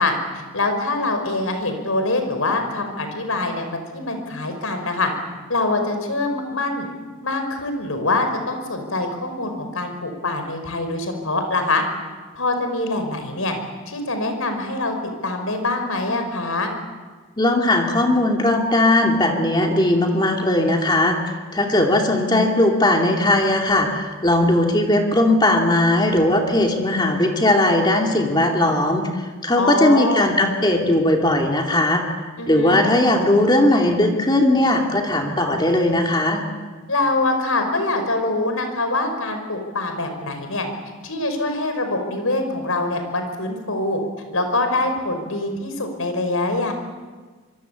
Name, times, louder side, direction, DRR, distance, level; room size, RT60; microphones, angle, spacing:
voice 1, 0.0-5.1 5.5-6.9 7.2-11.8 12.3-13.5 13.9-15.0 15.2-16.7 29.6-30.3 32.4-32.8 36.9-40.7 41.0-44.0 44.3-46.7, left 2 dB, 80° left, 6 dB, 5.5 m, -24 dB
voice 2, 17.4-21.2 21.5-32.0 32.5-36.4, left 1 dB, 20° left, 2 dB, 2.6 m, -18 dB
25.5 x 24.0 x 8.5 m, 1.4 s
head